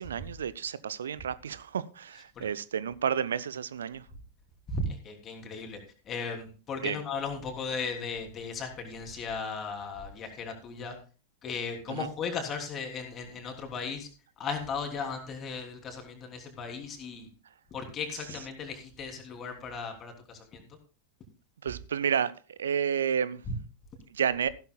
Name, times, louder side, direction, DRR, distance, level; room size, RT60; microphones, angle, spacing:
voice 1, 0.0-4.1 6.8-7.0 11.9-12.1 21.6-23.4 24.1-24.5, right 8 dB, 65° right, 18 dB, 0.5 m, -31 dB
voice 2, 4.7-5.8 6.0-11.0 11.4-14.1 14.4-17.3 17.7-20.6, left 4 dB, 25° left, 4 dB, 3.1 m, -36 dB
15.0 x 12.5 x 2.3 m, 0.35 s
figure-of-eight pair, 90°, 0 cm